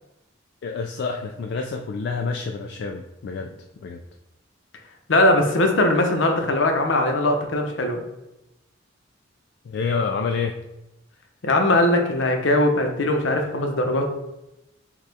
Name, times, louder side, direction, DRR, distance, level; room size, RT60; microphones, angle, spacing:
voice 1, 0.6-3.5 3.8-4.0 9.6-10.6, left 5 dB, 60° left, 3 dB, 0.3 m, -28 dB
voice 2, 5.1-8.0 11.4-14.1, left 1 dB, 75° left, 3 dB, 0.8 m, -20 dB
6.6 x 2.4 x 3.4 m, 0.92 s
head